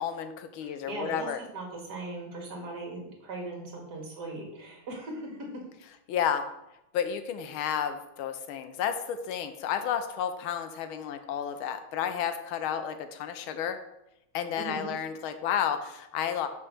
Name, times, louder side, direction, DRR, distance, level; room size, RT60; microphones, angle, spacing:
voice 1, 0.0-1.4 6.1-6.4 6.9-13.8 14.3-16.5, left 8 dB, 80° left, 9 dB, 1.5 m, -31 dB
voice 2, 0.6-5.4 14.6-14.9, right 2 dB, 50° right, -1 dB, 2.2 m, -39 dB
6.3 x 4.6 x 6.0 m, 0.89 s
omnidirectional pair, 2.3 m